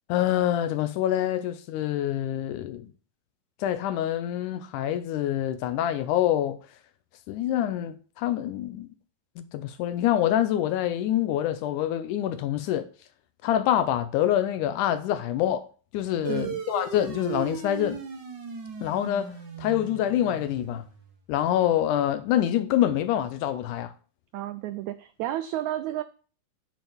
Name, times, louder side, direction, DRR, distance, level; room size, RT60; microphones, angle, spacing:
voice 1, 0.1-2.9 3.6-6.6 7.3-8.9 9.4-12.9 13.4-15.7 15.9-18.0 18.8-20.8 21.3-23.9, left 11 dB, 80° left, 1.9 m, -26 dB
sound 1, 16.2-21.1, right 6 dB, 55° right, 1.2 m, -37 dB
voice 2, 16.3-16.6 24.3-26.0, right 13 dB, 90° right, 1.6 m, -32 dB
10.5 x 9.0 x 3.5 m
omnidirectional pair, 3.9 m